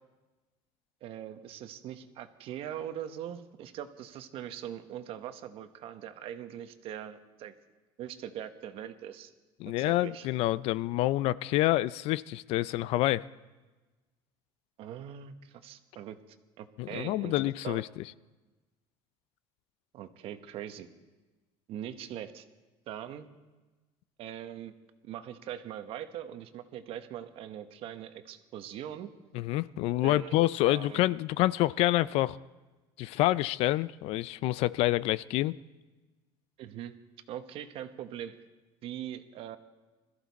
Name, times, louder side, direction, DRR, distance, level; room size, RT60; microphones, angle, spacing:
voice 1, 1.0-7.5 8.0-9.3 9.8-10.3 14.8-16.2 16.6-17.3 17.6-17.8 19.9-20.9 21.7-22.4 22.9-23.3 24.2-24.7 25.1-29.1 30.0-30.4 30.6-31.0 36.6-37.0 37.3-38.4 38.8-39.6, right 10 dB, 50° right, 9 dB, 1.0 m, -41 dB
voice 2, 9.6-13.3 16.8-17.9 29.3-32.4 33.0-35.5, left 16 dB, 60° left, 19 dB, 0.4 m, -27 dB
21.0 x 14.0 x 4.1 m, 1.2 s
cardioid pair, 140°, 12 cm